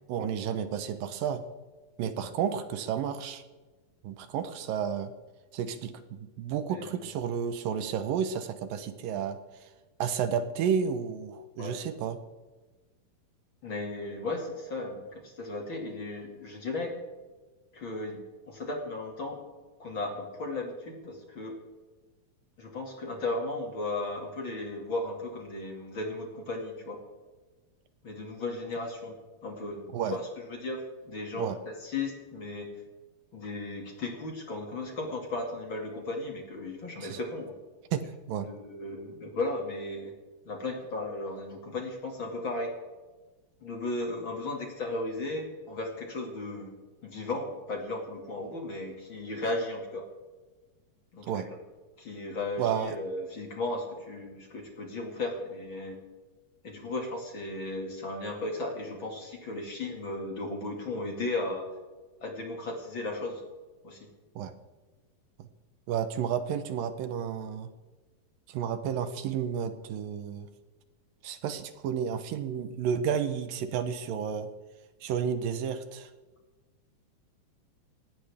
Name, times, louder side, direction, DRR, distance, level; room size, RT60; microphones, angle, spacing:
voice 1, 0.1-1.4 2.0-3.4 4.0-5.1 5.5-9.7 10.0-12.2 29.9-30.2 31.4-31.6 37.0-37.2 37.9-38.5 51.2-51.5 52.6-53.0 64.4-64.5 65.4-65.5 65.9-67.7 68.5-70.5 71.2-74.5 75.0-76.1, right 8 dB, 75° right, 10 dB, 2.6 m, -31 dB
voice 2, 13.6-17.0 17.7-19.4 19.8-21.6 22.6-27.0 28.0-32.7 33.3-37.5 38.5-40.1 40.4-42.7 43.6-46.7 47.0-50.1 51.1-51.5 52.0-56.0 56.6-61.7 62.2-63.4 63.8-64.1, left 2 dB, 40° left, 1 dB, 2.6 m, -35 dB
18.5 x 17.0 x 3.5 m, 1.3 s
omnidirectional pair, 4.1 m